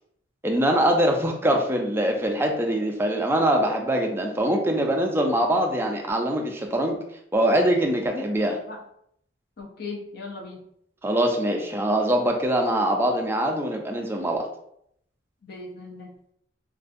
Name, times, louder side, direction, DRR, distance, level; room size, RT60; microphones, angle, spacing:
voice 1, 0.4-7.0 7.3-8.6 11.0-14.5, right 1 dB, 15° right, 2 dB, 0.3 m, -23 dB
voice 2, 9.6-10.6 15.4-16.1, left 3 dB, 55° left, 2 dB, 0.5 m, -37 dB
2.4 x 2.2 x 2.5 m, 0.71 s
head